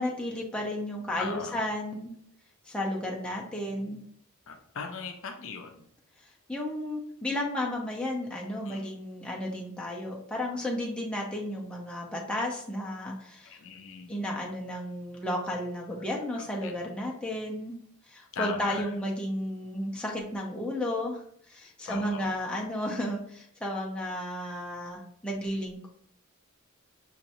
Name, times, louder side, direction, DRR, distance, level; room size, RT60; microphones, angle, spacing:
voice 1, 0.0-2.1 2.7-4.0 6.5-13.6 14.1-17.7 18.1-21.2 21.5-25.9, left 1 dB, 5° left, -3 dB, 0.7 m, -33 dB
voice 2, 1.2-1.6 4.5-5.9 8.6-8.9 13.4-14.1 16.3-16.7 18.3-18.9 21.9-22.3, left 5 dB, 65° left, 4 dB, 0.6 m, -39 dB
5.7 x 2.9 x 2.6 m, 0.66 s
head